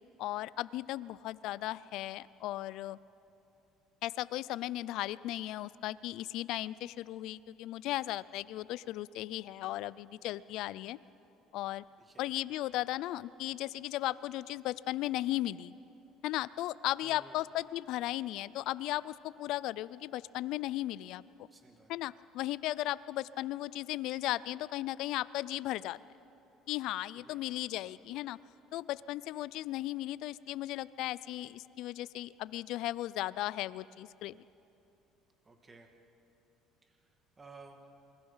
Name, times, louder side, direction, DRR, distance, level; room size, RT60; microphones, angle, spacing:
voice 1, 0.2-3.0 4.0-11.0 11.5-11.8 12.2-15.7 16.2-21.2 21.9-26.0 26.7-28.4 28.7-34.4, left 15 dB, 70° left, 19 dB, 0.4 m, -36 dB
voice 2, 12.0-12.3 17.0-17.5 21.5-21.9 27.1-27.5 35.4-35.9 36.8-37.9, right 3 dB, 20° right, 4 dB, 2.2 m, -56 dB
28.0 x 20.5 x 5.7 m, 2.9 s
supercardioid pair, 100°, 0 cm